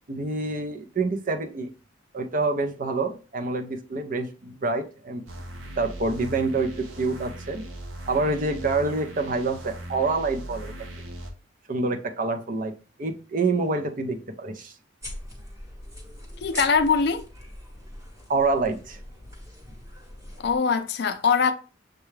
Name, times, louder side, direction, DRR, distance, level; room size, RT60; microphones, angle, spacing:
voice 1, 0.1-1.7 2.1-5.2 5.8-7.6 8.1-10.7 11.7-12.7 13.0-14.7 18.3-19.0, right 3 dB, 45° right, 0.5 m, -27 dB
sound 1, 5.3-11.3, right 1 dB, 85° right, 0.8 m, -39 dB
sound 2, 15.0-20.6, left 1 dB, 15° right, 1.1 m, -41 dB
voice 2, 16.4-17.2 20.4-21.5, left 5 dB, 60° left, 0.4 m, -22 dB
6.5 x 2.3 x 3.1 m
head